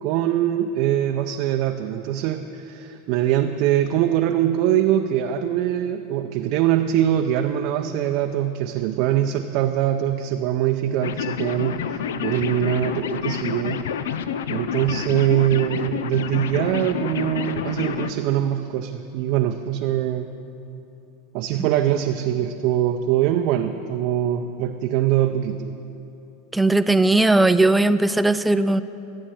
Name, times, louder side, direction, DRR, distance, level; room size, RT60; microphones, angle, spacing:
voice 1, 0.0-13.8 14.5-20.3 21.3-25.8, right 11 dB, 55° right, 5 dB, 0.6 m, -23 dB
sound 1, 11.0-18.1, left 8 dB, 75° left, 0.5 m, -28 dB
voice 2, 26.5-28.8, right 2 dB, 5° right, 13 dB, 0.5 m, -18 dB
12.5 x 8.5 x 7.7 m, 2.8 s
hypercardioid pair, 90°, 0 cm